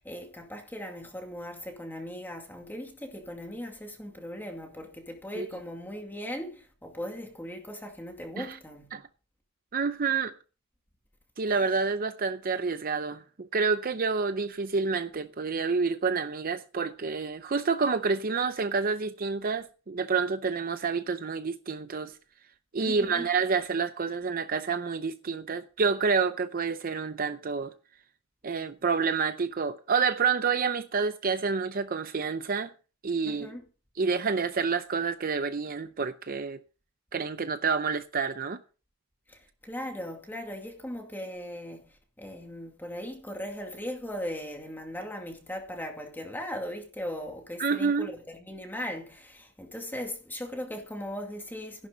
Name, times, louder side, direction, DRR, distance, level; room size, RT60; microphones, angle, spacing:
voice 1, 0.0-8.9 11.5-11.6 22.8-23.3 33.2-33.6 39.3-41.8 42.2-51.9, equal, 10° left, 2.3 m, -38 dB
voice 2, 9.7-10.3 11.4-13.2 13.5-22.1 22.7-27.7 28.4-32.7 33.0-33.5 34.0-36.6 37.1-38.6 47.6-48.1, right 5 dB, 45° right, 0.6 m, -28 dB
15.0 x 11.0 x 3.9 m
head